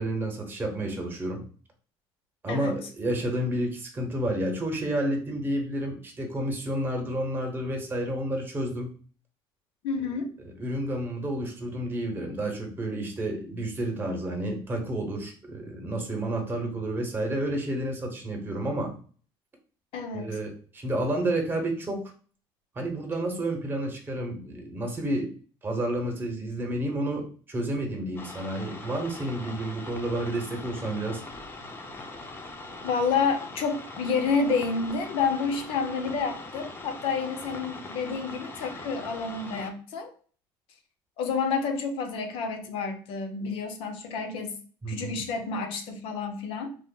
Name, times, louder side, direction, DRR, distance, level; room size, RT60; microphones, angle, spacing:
voice 1, 0.0-1.4 2.4-8.9 10.6-18.9 20.1-22.1 22.7-25.3 25.6-31.2 44.8-45.1, right 1 dB, 20° right, 0.9 m, -30 dB
voice 2, 9.8-10.3 19.9-20.4 32.8-40.1 41.2-44.6 44.9-46.8, left 5 dB, 70° left, 0.7 m, -29 dB
sound 1, 28.2-39.7, left 2 dB, 20° left, 0.5 m, -41 dB
3.3 x 2.0 x 3.7 m
cardioid pair, 120°, 10 cm